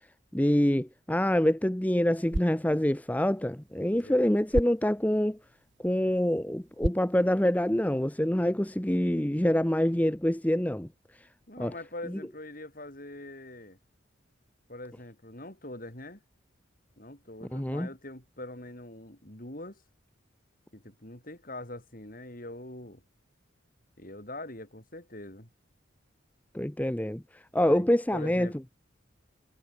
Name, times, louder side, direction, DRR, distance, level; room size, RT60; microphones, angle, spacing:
voice 1, 0.3-5.4 5.8-10.9 11.6-11.7 17.5-17.9 26.5-27.2 27.5-28.5, left 1 dB, 10° left, 0.7 m, -26 dB
sound 1, 2.1-8.1, right 1 dB, 65° right, 1.7 m, -38 dB
voice 2, 11.5-13.8 14.7-16.2 17.0-19.8 20.7-23.0 24.0-25.5 27.6-27.9 28.1-28.5, left 1 dB, 45° left, 4.8 m, -43 dB
head